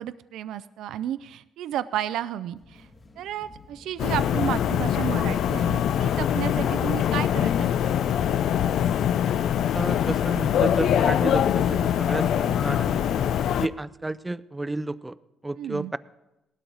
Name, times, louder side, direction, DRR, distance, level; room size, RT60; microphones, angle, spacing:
voice 1, 0.0-2.9 3.2-7.9 15.6-15.9, right 11 dB, 85° right, 14 dB, 0.4 m, -32 dB
sound 1, 2.5-12.4, left 2 dB, 40° left, 2.4 m, -51 dB
sound 2, 4.0-13.7, left 9 dB, 75° left, 0.4 m, -23 dB
voice 2, 9.7-13.0 13.6-15.2 15.4-16.0, right 2 dB, 15° right, 15 dB, 0.5 m, -31 dB
18.0 x 12.5 x 4.0 m, 0.95 s
cardioid pair, 90°, 0 cm